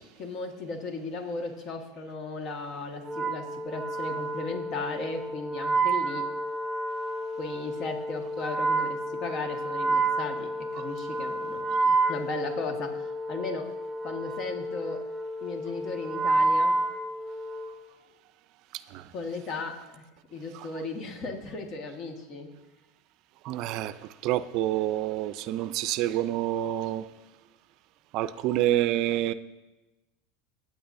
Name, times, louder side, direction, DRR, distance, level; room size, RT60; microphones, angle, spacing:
voice 1, 0.2-6.3 7.4-13.7 14.0-15.0 15.4-16.8 19.1-20.0 20.3-22.5, left 3 dB, 45° left, 1.6 m, -36 dB
Wind instrument woodwind instrument, 3.0-17.8, right 2 dB, 10° right, 2.0 m, -30 dB
voice 2, 23.4-23.9 24.2-27.0 28.1-29.3, right 13 dB, 55° right, 0.4 m, -27 dB
21.5 x 8.9 x 2.7 m
supercardioid pair, 125°, 0 cm